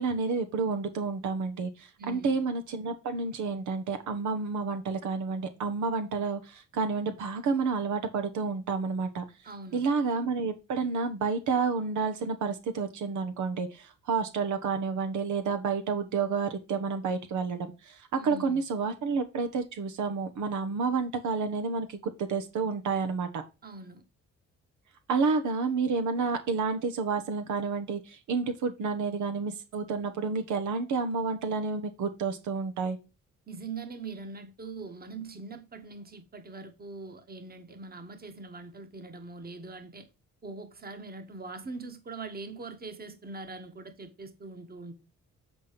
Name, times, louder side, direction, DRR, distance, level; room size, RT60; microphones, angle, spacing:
voice 1, 0.0-9.2 9.7-23.4 25.1-33.0, right 4 dB, 75° right, 1.2 m, -30 dB
voice 2, 2.0-2.4 9.4-9.9 18.1-18.6 23.6-24.0 33.5-40.1 40.4-44.9, right 3 dB, 30° right, 1.5 m, -42 dB
7.8 x 4.3 x 5.1 m
cardioid pair, 90°, 30 cm